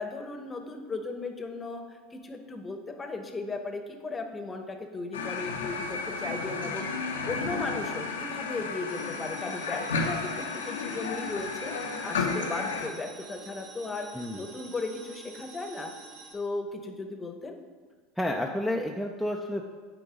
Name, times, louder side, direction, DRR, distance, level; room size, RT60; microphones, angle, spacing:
voice 1, 0.0-15.9 16.3-17.5, left 3 dB, 20° left, 6 dB, 0.9 m, -36 dB
sound 1, 5.1-12.9, left 4 dB, 85° left, 0.7 m, -33 dB
sound 2, 8.9-16.3, right 4 dB, 45° right, 1.4 m, -48 dB
voice 2, 18.2-19.6, left 1 dB, ahead, 0 dB, 0.5 m, -30 dB
9.0 x 3.8 x 5.0 m, 1.5 s
hypercardioid pair, 85°, 0 cm